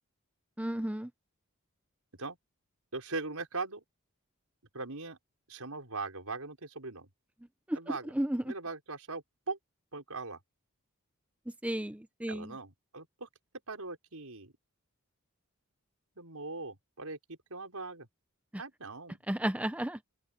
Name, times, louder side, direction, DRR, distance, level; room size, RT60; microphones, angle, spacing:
voice 1, 0.6-1.1 7.7-7.8 8.1-8.4 11.6-12.5 19.3-20.0, right 1 dB, 5° right, 0.6 m, -32 dB
voice 2, 2.9-3.8 4.7-5.2 5.5-7.1 7.8-8.1 8.4-9.6 9.9-10.4 12.3-13.3 13.7-14.5 16.2-18.1 18.6-19.2, right 3 dB, 85° right, 5.2 m, -40 dB
open air
head